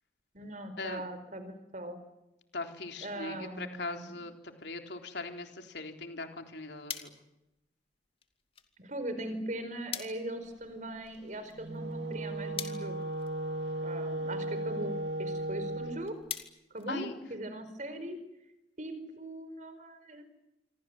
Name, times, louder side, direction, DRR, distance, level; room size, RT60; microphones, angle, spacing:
voice 1, 0.3-2.0 3.0-4.1 8.8-13.0 13.8-14.9 15.2-16.2 16.7-18.2 18.8-20.2, right 1 dB, 40° right, 10 dB, 4.6 m, -40 dB
voice 2, 2.5-4.3 4.6-7.1 16.9-17.1, left 3 dB, 60° left, 5 dB, 3.8 m, -40 dB
sound 1, 6.2-17.6, left 8 dB, 30° left, 2.5 m, -47 dB
Wind instrument woodwind instrument, 11.5-16.0, right 2 dB, 60° right, 3.2 m, -36 dB
27.5 x 24.0 x 7.9 m, 0.93 s
head